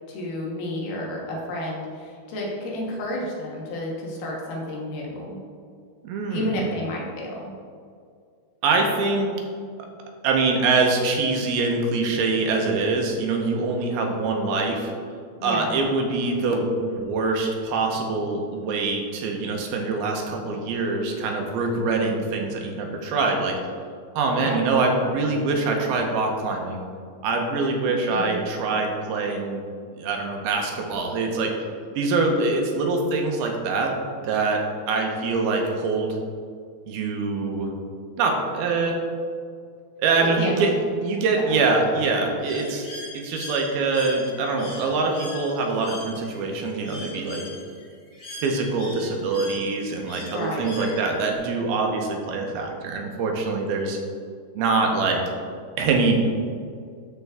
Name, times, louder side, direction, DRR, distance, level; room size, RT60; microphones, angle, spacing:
voice 1, 0.1-5.4 6.3-7.5 15.4-15.8 24.3-24.7 28.1-28.4 40.2-40.7 41.4-41.6 50.3-50.7, left 1 dB, 80° left, -2 dB, 3.3 m, -31 dB
voice 2, 6.0-6.7 8.6-9.3 10.2-14.9 15.4-23.6 24.2-26.8 27.2-29.6 30.0-31.5 32.0-33.9 34.2-36.2 36.9-37.7 38.2-39.0 40.0-40.8 41.0-42.9 43.1-47.4 48.3-54.0 54.5-55.2 55.8-56.3, right 3 dB, 80° right, 2 dB, 2.8 m, -24 dB
Bird, 42.4-51.4, left 2 dB, 30° left, 1.8 m, -41 dB
12.5 x 4.5 x 3.5 m, 2.2 s
omnidirectional pair, 4.4 m